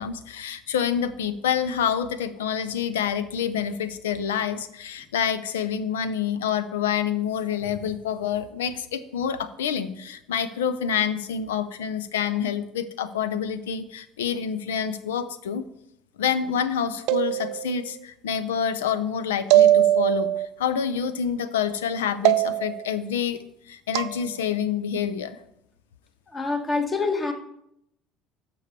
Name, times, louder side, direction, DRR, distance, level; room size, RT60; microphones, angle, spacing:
voice 1, 0.0-15.7 16.2-20.3 20.6-23.4 23.7-25.4, left 8 dB, 75° left, 14 dB, 0.6 m, -27 dB
sound 1, 17.1-17.9 19.5-20.5 22.3-22.9 23.9-24.2, right 13 dB, 60° right, 0.3 m, -20 dB
voice 2, 26.3-27.3, left 3 dB, 25° left, 5 dB, 1.6 m, -26 dB
11.0 x 6.9 x 3.3 m, 0.78 s
figure-of-eight pair, 65°, 0 cm